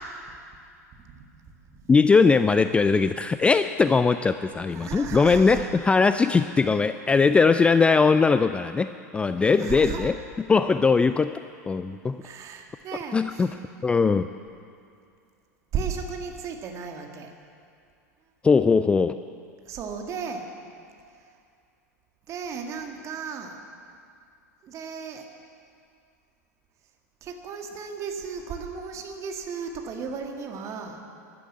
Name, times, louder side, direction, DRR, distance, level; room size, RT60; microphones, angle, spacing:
voice 1, 1.9-10.2 10.5-11.4 11.7-12.3 13.1-13.6 13.8-14.3 18.4-19.2, left 4 dB, 10° left, 12 dB, 0.3 m, -20 dB
voice 2, 4.7-5.6 9.6-10.1 12.2-13.5 15.7-17.3 19.7-20.4 22.3-23.6 24.6-25.2 27.2-31.0, right 6 dB, 35° right, 3 dB, 2.0 m, -35 dB
15.0 x 11.5 x 8.0 m, 2.4 s
figure-of-eight pair, 85°, 9 cm